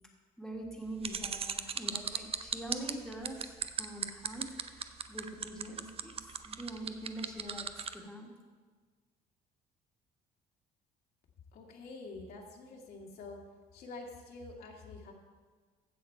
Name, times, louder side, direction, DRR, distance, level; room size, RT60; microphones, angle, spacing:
voice 1, 0.4-8.3, right 1 dB, 5° left, -1 dB, 1.8 m, -44 dB
sound 1, 1.0-7.9, right 7 dB, 35° right, 0.6 m, -36 dB
voice 2, 11.5-13.4 13.7-15.1, left 3 dB, 65° left, -1 dB, 2.0 m, -47 dB
15.5 x 6.5 x 4.6 m, 1.4 s
cardioid pair, 110°, 17 cm